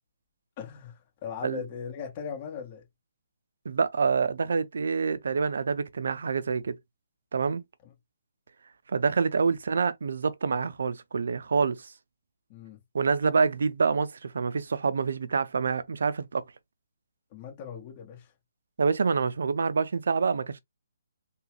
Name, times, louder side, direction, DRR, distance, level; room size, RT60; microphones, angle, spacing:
voice 1, 0.6-2.8 7.8-7.9 12.5-12.8 17.3-18.3, left 7 dB, 30° left, 1.7 m, -39 dB
voice 2, 3.7-6.8 7.3-7.6 8.9-11.9 12.9-16.4 18.8-20.6, right 5 dB, 65° right, 0.5 m, -26 dB
3.7 x 2.4 x 3.1 m
figure-of-eight pair, 140°, 0 cm